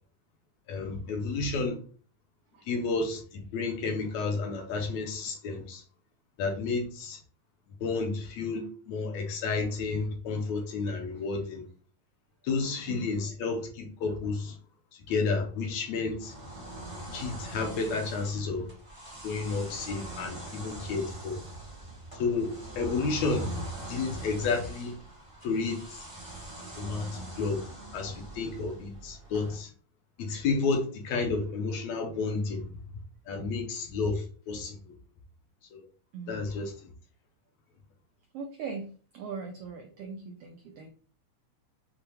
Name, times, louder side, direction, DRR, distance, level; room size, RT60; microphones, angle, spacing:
voice 1, 0.7-1.8 2.7-5.8 6.4-7.2 7.8-11.6 12.4-14.6 15.1-16.3 17.1-18.7 19.2-21.4 22.2-25.0 25.4-26.1 26.8-27.6 27.9-29.7 30.2-32.6 33.3-34.8 35.7-35.8 36.3-36.7, left 4 dB, 75° left, 1.8 m, -31 dB
sound 1, 16.2-29.6, right 1 dB, 55° right, 0.3 m, -42 dB
voice 2, 38.3-40.9, right 5 dB, 85° right, 1.3 m, -40 dB
6.8 x 2.3 x 3.0 m
omnidirectional pair, 3.5 m